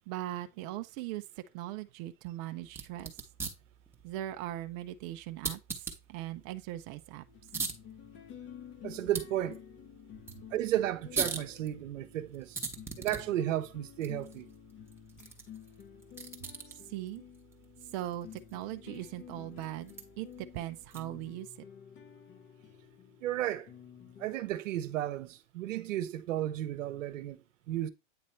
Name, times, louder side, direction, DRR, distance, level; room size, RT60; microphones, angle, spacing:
voice 1, 0.1-3.2 4.0-7.2 16.7-17.2 17.9-21.7, right 14 dB, 35° right, 0.4 m, -40 dB
sound 1, 2.6-21.3, right 4 dB, 5° right, 0.9 m, -43 dB
sound 2, 7.3-24.3, left 9 dB, 30° left, 0.7 m, -51 dB
voice 2, 8.8-9.6 10.5-12.6 13.0-14.5 23.2-23.7 24.2-27.9, right 12 dB, 75° right, 0.8 m, -33 dB
8.5 x 2.9 x 4.4 m
hypercardioid pair, 120°, 39 cm